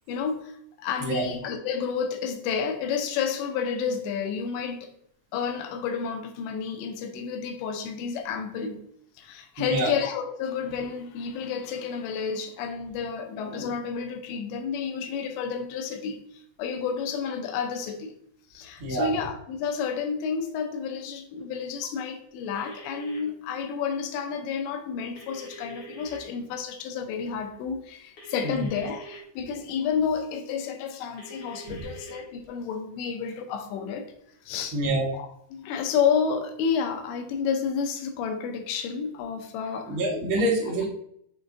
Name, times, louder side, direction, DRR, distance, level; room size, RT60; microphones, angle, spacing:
voice 1, 0.1-4.9 5.3-8.8 9.2-18.1 18.5-34.1 34.4-34.8 35.1-40.0, left 6 dB, 90° left, 5 dB, 3.1 m, -30 dB
voice 2, 1.0-1.4 9.6-9.9 18.8-19.2 28.4-28.6 34.7-35.1 39.9-40.9, right 1 dB, 85° right, -3 dB, 1.1 m, -26 dB
sound 1, 22.5-23.2 25.2-26.2 28.2-29.2 31.2-32.2, right 1 dB, 55° left, 1.6 m, -44 dB
7.2 x 4.0 x 3.5 m, 0.71 s
omnidirectional pair, 5.0 m